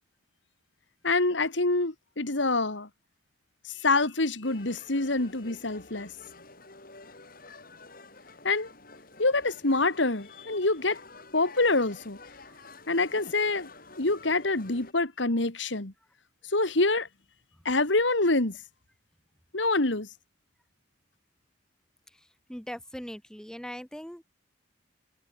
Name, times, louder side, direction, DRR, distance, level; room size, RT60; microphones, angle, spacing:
voice 1, 1.0-2.9 3.8-6.1 8.4-8.7 9.2-11.0 11.3-12.2 12.9-13.7 14.0-15.9 16.5-17.1 17.6-18.6 19.5-20.1, left 2 dB, 70° left, 2.3 m, -26 dB
sound 1, 4.4-14.9, left 3 dB, 50° left, 7.4 m, -50 dB
voice 2, 22.5-24.2, equal, 5° left, 1.2 m, -40 dB
head